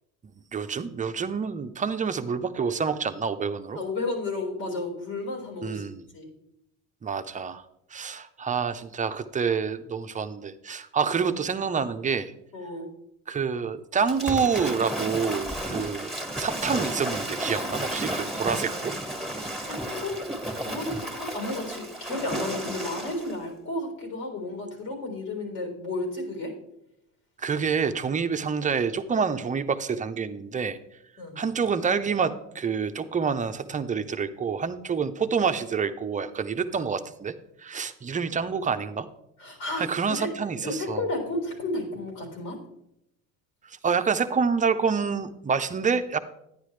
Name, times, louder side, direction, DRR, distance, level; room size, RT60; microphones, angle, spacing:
voice 1, 0.5-3.8 5.6-6.0 7.0-7.6 7.9-12.3 13.3-18.9 27.4-30.8 31.4-37.3 37.6-39.1 39.8-41.1 43.6-46.2, right 6 dB, 25° right, 10 dB, 0.6 m, -27 dB
voice 2, 3.7-5.8 6.1-6.3 12.5-12.9 19.4-20.2 20.6-26.5 31.2-31.4 39.4-39.9 40.2-42.6, left 2 dB, 85° left, 1 dB, 3.9 m, -32 dB
Waves surf / Splash splatter, 14.1-23.3, right 1 dB, ahead, 1.7 m, -33 dB
10.0 x 10.0 x 3.2 m, 0.80 s
supercardioid pair, 105°, 32 cm